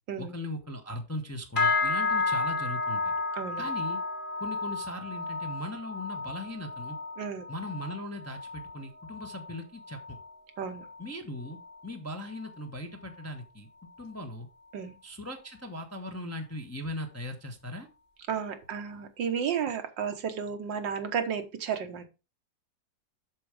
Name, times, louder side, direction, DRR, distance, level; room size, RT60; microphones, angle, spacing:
voice 1, 0.2-3.1 3.6-4.0 4.4-7.0 7.5-10.2 11.0-13.7 14.0-14.5 15.0-17.9, left 1 dB, 10° left, 4 dB, 0.8 m, -39 dB
sound 1, 1.6-11.1 11.4-11.8 12.2-12.6 13.1-13.2, left 3 dB, 30° left, 1.5 m, -32 dB
voice 2, 3.3-3.6 7.2-7.5 10.6-10.9 14.7-14.9 18.3-22.1, right 7 dB, 80° right, 7 dB, 1.8 m, -33 dB
7.6 x 6.4 x 4.9 m, 0.29 s
omnidirectional pair, 2.0 m